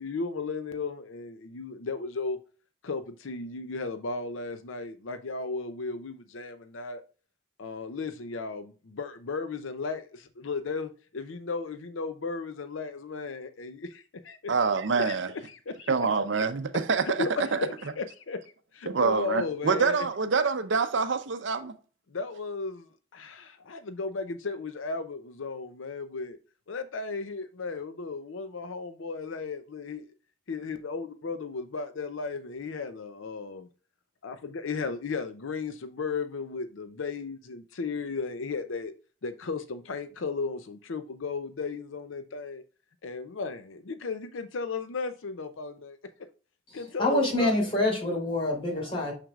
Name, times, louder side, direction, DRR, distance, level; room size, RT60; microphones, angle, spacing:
voice 1, 0.0-2.4 2.8-7.0 7.6-14.5 15.0-15.2 15.7-16.1 17.1-18.4 18.7-20.0 22.1-26.4 26.7-30.0 30.5-33.7 34.2-38.9 39.2-42.6 43.0-46.0 46.7-47.5, left 4 dB, 80° left, 0.6 m, -35 dB
voice 2, 14.5-15.3 15.9-17.6 18.9-21.7, right 5 dB, 65° right, 0.6 m, -26 dB
voice 3, 46.7-49.1, left 1 dB, 30° left, 3.1 m, -26 dB
6.6 x 6.0 x 2.4 m
head